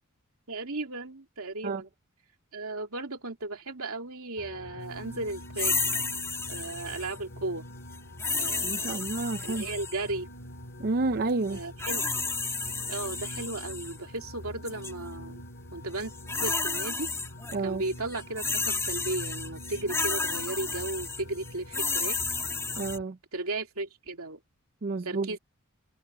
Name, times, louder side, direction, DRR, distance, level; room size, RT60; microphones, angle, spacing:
voice 1, 0.5-1.9 2.5-5.8 6.5-7.6 8.4-9.0 9.4-10.3 11.5-12.0 12.9-15.4 15.7-16.1 16.4-17.1 17.6-22.2 23.3-24.4 25.0-25.4, right 2 dB, 70° right, 3.2 m, -35 dB
sound 1, 4.4-23.0, left 1 dB, 55° left, 3.5 m, -45 dB
sound 2, 5.6-7.2 8.2-10.1 11.5-13.9 14.7-14.9 16.0-17.6 17.9-23.0, left 4 dB, 15° left, 2.2 m, -32 dB
voice 2, 8.6-9.6 10.8-11.6 17.5-17.8 22.8-23.2 24.8-25.3, right 3 dB, 45° right, 0.6 m, -30 dB
head